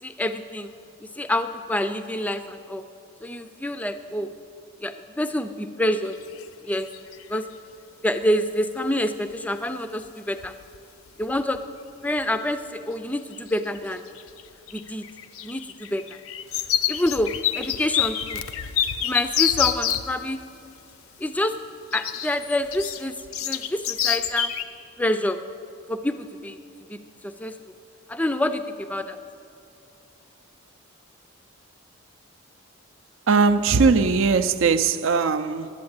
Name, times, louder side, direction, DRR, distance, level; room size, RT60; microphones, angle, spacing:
voice 1, 0.0-0.7 1.0-2.8 3.2-4.3 4.8-6.1 6.6-6.9 7.3-7.5 8.0-10.5 11.2-11.6 12.0-14.0 14.7-15.0 15.4-16.0 16.9-18.4 19.0-20.4 21.2-21.5 21.9-24.5 25.0-25.4 25.9-26.6 26.9-27.5 28.1-29.2, left 1 dB, 5° left, 0.4 m, -27 dB
sound 1, 6.2-6.4 6.7-7.4 9.3-9.4 10.1-10.2 10.4-10.8 11.1-11.6 12.2-12.3 13.3-13.8 14.1-20.1 21.9-24.6, left 10 dB, 75° left, 0.6 m, -27 dB
voice 2, 33.3-35.7, right 4 dB, 65° right, 0.5 m, -20 dB
11.5 x 8.5 x 8.8 m
head